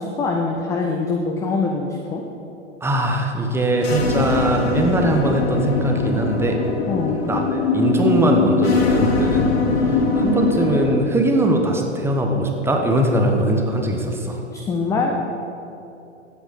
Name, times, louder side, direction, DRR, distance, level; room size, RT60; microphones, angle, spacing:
voice 1, 0.0-2.2 6.9-7.2 14.5-15.1, left 4 dB, 10° left, 1 dB, 0.4 m, -23 dB
voice 2, 2.8-6.7 7.2-9.5 10.1-14.4, right 1 dB, 5° right, 2 dB, 1.1 m, -21 dB
sound 1, 3.8-11.0, left 4 dB, 55° left, 1.5 m, -21 dB
15.5 x 8.2 x 4.2 m, 2.8 s
figure-of-eight pair, 105°, 36 cm